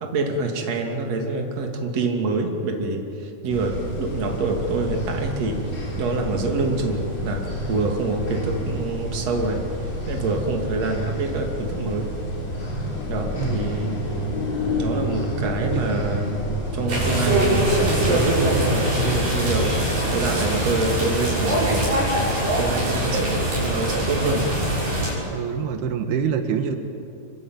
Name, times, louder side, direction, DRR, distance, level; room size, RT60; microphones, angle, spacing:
voice 1, 0.0-12.1 13.1-14.0 14.8-16.5 16.7-17.7 18.1-19.8 20.1-21.9 22.6-24.5, right 3 dB, 45° right, 2 dB, 3.6 m, -26 dB
sound 1, 3.5-18.1, equal, 80° left, 8.9 m, -29 dB
voice 2, 13.3-13.7 15.6-16.1 25.3-26.8, right 7 dB, 85° right, 6 dB, 3.4 m, -26 dB
sound 2, 16.9-25.1, right 1 dB, 65° right, 8.6 m, -22 dB
26.0 x 24.0 x 9.2 m, 2.7 s
omnidirectional pair, 4.4 m